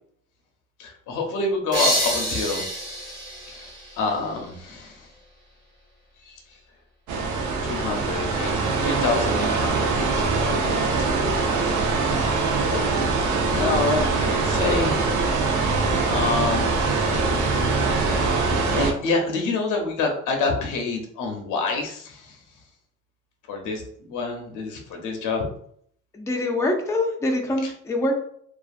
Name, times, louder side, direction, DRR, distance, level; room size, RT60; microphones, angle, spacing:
voice 1, 0.8-2.7 3.5-5.1 6.2-6.6 7.5-11.2 12.1-15.7 16.0-17.8 18.7-22.6 23.5-25.4 27.6-27.7, left 3 dB, 90° left, 2 dB, 0.6 m, -28 dB
sound 1, 1.7-4.5, right 1 dB, 15° right, 1.1 m, -27 dB
sound 2, 7.1-18.9, right 3 dB, 75° right, 0.6 m, -23 dB
voice 2, 26.1-28.2, left 2 dB, 10° left, 2 dB, 0.4 m, -24 dB
2.4 x 2.4 x 2.4 m, 0.64 s
cardioid pair, 90°, 30 cm